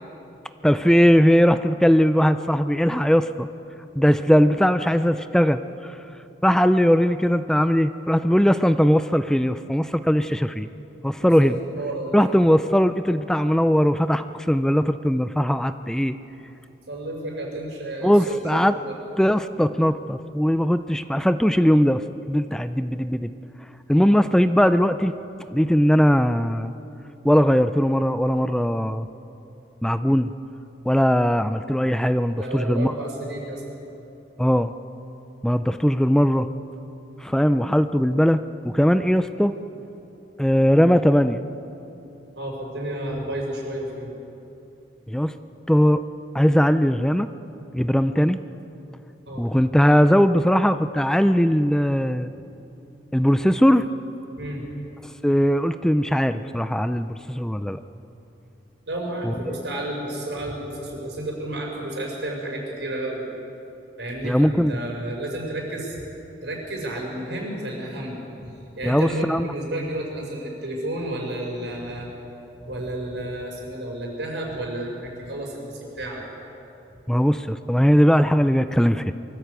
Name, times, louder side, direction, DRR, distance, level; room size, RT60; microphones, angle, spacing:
voice 1, 0.6-3.5 4.0-5.9 6.4-10.7 11.0-11.6 12.1-16.2 18.0-18.7 19.2-23.3 23.9-25.1 25.5-26.7 27.2-29.1 29.8-30.3 30.9-32.9 34.4-34.7 35.4-36.5 37.2-39.5 40.4-41.4 45.1-45.3 45.7-46.0 46.3-47.3 47.7-48.4 49.4-52.3 53.1-53.9 55.2-57.8 59.2-59.6 64.2-64.8 68.8-69.5 77.1-79.1, equal, 5° left, 11 dB, 0.4 m, -19 dB
voice 2, 11.2-12.3 16.9-18.4 18.7-19.0 23.9-24.1 32.3-33.6 42.3-44.1 49.3-49.4 54.4-54.7 58.9-63.2 64.0-66.0 66.4-68.5 68.8-72.1 72.6-76.2, right 1 dB, 90° right, -1 dB, 5.8 m, -31 dB
23.5 x 14.0 x 8.2 m, 2.9 s
head